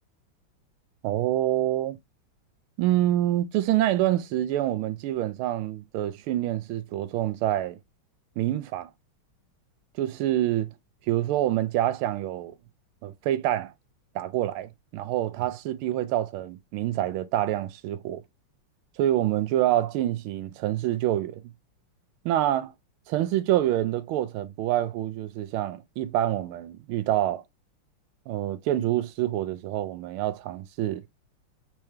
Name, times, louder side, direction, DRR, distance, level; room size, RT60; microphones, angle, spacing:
voice 1, 1.0-2.0 2.8-7.8 8.4-8.9 10.0-10.7 11.1-12.5 13.0-13.7 14.1-18.2 19.0-21.4 22.2-22.7 23.1-27.4 28.3-31.0, right 13 dB, 80° right, 1.4 m, -26 dB
4.6 x 3.4 x 3.2 m
omnidirectional pair, 2.4 m